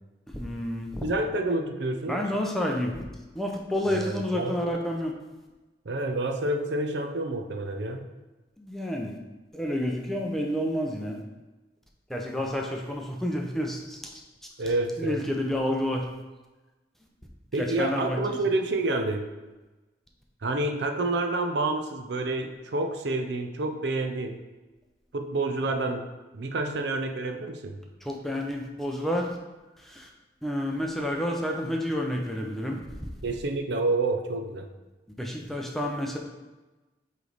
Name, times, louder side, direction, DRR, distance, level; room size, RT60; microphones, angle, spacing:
voice 1, 0.3-1.1 2.1-3.0 3.3-5.1 8.6-9.2 9.5-11.2 12.1-14.2 15.0-16.1 17.5-18.4 28.0-29.3 29.8-30.1 30.4-32.8 35.2-36.2, equal, ahead, 0 dB, 0.5 m, -29 dB
voice 2, 1.0-2.2 3.9-4.6 5.9-8.0 14.6-15.2 17.5-19.2 20.4-24.4 25.1-26.0 26.3-27.8 33.2-34.7, right 2 dB, 65° right, 5 dB, 0.5 m, -28 dB
8.0 x 3.3 x 3.9 m, 1.1 s
head